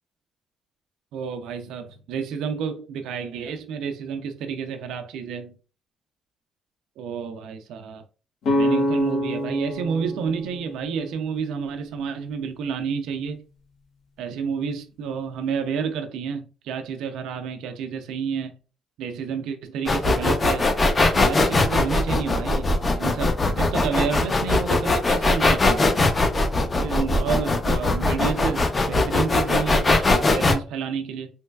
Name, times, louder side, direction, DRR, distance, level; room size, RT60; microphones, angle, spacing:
voice 1, 1.1-5.5 7.0-8.0 8.6-13.4 14.2-18.6 19.0-20.7 21.1-25.9 26.8-31.3, right 6 dB, 85° right, 0.4 m, -30 dB
sound 1, 8.4-12.2, left 1 dB, 80° left, 0.9 m, -27 dB
sound 2, 19.9-30.5, left 2 dB, 30° left, 0.6 m, -20 dB
3.2 x 3.1 x 2.2 m
cardioid pair, 90°, 0 cm